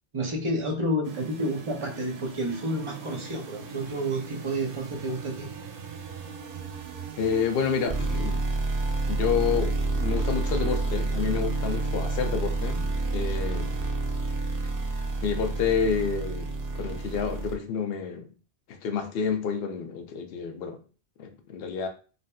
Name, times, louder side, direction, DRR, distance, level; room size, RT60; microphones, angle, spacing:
voice 1, 0.1-5.5, right 1 dB, 35° right, 0.6 m, -30 dB
sound 1, 1.0-17.6, right 3 dB, 65° right, 0.7 m, -30 dB
voice 2, 7.2-8.4 9.1-13.8 15.2-18.3 18.7-20.8 21.2-21.9, left 6 dB, 70° left, 0.8 m, -29 dB
3.2 x 2.7 x 2.2 m
omnidirectional pair, 1.1 m